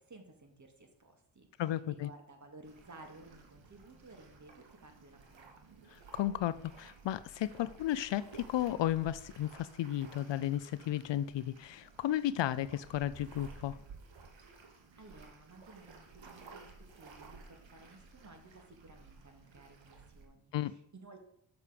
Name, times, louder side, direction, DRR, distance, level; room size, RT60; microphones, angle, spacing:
voice 1, 0.0-5.6 14.7-21.2, right 2 dB, 40° right, 2.2 m, -56 dB
voice 2, 1.6-2.1 6.1-13.8 20.5-20.7, left 12 dB, 65° left, 0.6 m, -34 dB
sound 1, 2.6-20.2, right 4 dB, 70° right, 1.9 m, -55 dB
7.0 x 6.6 x 5.1 m
cardioid pair, 55°, 47 cm